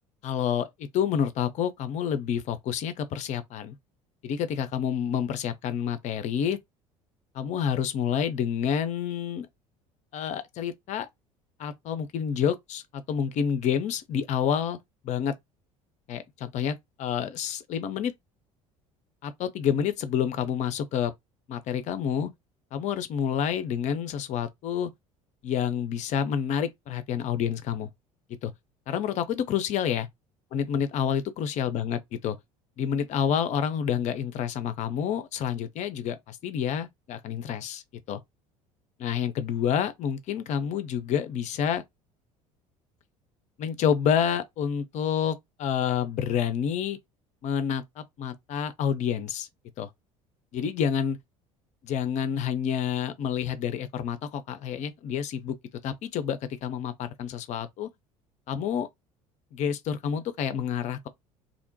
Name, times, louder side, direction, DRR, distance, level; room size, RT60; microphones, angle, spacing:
voice 1, 0.2-3.8 4.2-6.6 7.3-9.5 10.1-11.1 11.6-14.8 15.0-15.3 16.1-18.1 19.2-21.1 21.5-22.3 22.7-24.9 25.4-27.9 28.4-28.5 28.9-30.1 30.5-32.4 32.8-37.8 38.1-38.2 39.0-41.8 43.6-47.0 47.4-49.5 49.8-49.9 50.5-51.2 51.8-55.6 55.8-57.9 58.5-58.9 59.5-61.1, left 8 dB, 40° left, 0.5 m, -28 dB
2.7 x 2.1 x 2.6 m
figure-of-eight pair, 60°, 18 cm